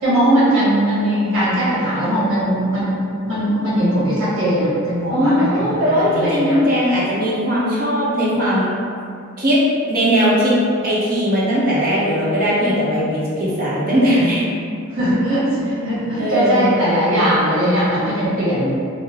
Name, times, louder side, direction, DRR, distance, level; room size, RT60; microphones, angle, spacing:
voice 1, 0.0-6.6 14.9-18.8, right 1 dB, 75° right, -10 dB, 1.3 m, -19 dB
voice 2, 5.1-8.8 9.4-9.6 9.9-10.6 10.8-14.5 16.1-16.7, equal, 45° right, -8 dB, 0.8 m, -18 dB
3.2 x 2.0 x 3.4 m, 2.4 s
head